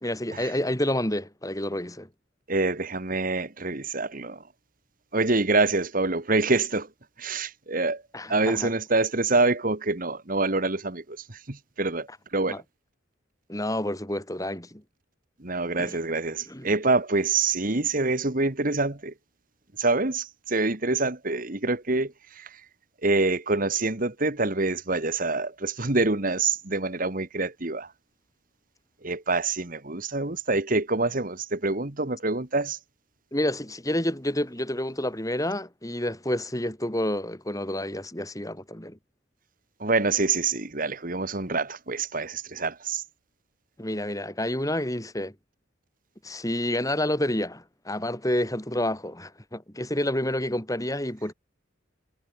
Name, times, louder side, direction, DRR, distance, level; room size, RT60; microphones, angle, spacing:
voice 1, 0.0-2.1 8.1-8.7 12.5-12.6 13.5-14.8 15.8-16.0 16.5-16.7 33.3-39.0 43.8-45.3 46.2-51.3, left 1 dB, 15° left, 3.9 m, -29 dB
voice 2, 2.5-4.4 5.1-6.9 7.2-8.0 8.3-11.0 11.3-12.1 12.3-12.6 15.4-19.1 19.8-22.5 23.0-27.9 29.0-32.8 39.8-43.0, right 3 dB, 45° right, 1.8 m, -26 dB
head